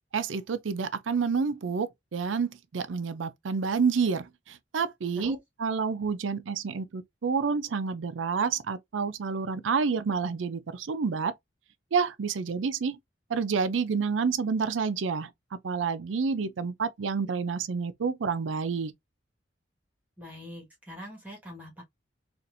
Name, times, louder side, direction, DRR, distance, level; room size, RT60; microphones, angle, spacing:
voice 1, 0.1-11.3 11.9-13.0 13.3-15.3 15.6-18.9, right 5 dB, 85° right, 0.5 m, -29 dB
voice 2, 20.2-21.8, equal, 10° right, 1.5 m, -43 dB
4.1 x 2.5 x 2.5 m
head